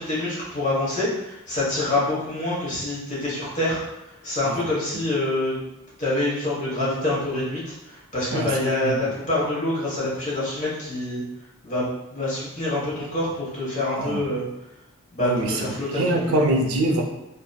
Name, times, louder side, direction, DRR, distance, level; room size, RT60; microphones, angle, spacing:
voice 1, 0.0-5.6 6.0-11.2 11.6-14.4 15.1-16.4, left 1 dB, 35° left, -7 dB, 1.0 m, -26 dB
voice 2, 15.2-15.5 16.0-17.0, right 1 dB, 75° right, 3 dB, 0.4 m, -23 dB
2.8 x 2.6 x 2.2 m, 0.90 s
head